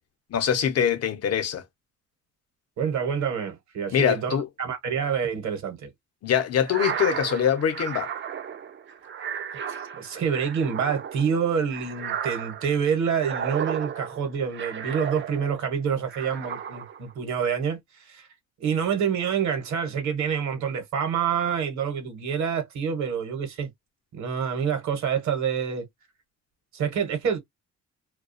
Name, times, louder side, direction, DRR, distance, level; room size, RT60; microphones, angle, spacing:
voice 1, 0.3-1.6 3.9-4.5 6.2-8.1, left 9 dB, 55° left, 0.7 m, -23 dB
voice 2, 2.8-5.9 10.0-18.3 18.6-23.7 24.1-25.9 26.7-27.4, right 7 dB, 70° right, 0.9 m, -27 dB
sound 1, 6.6-15.7 16.1-17.1, right 8 dB, 40° right, 0.4 m, -34 dB
2.3 x 2.2 x 2.4 m
cardioid pair, 90°, 30 cm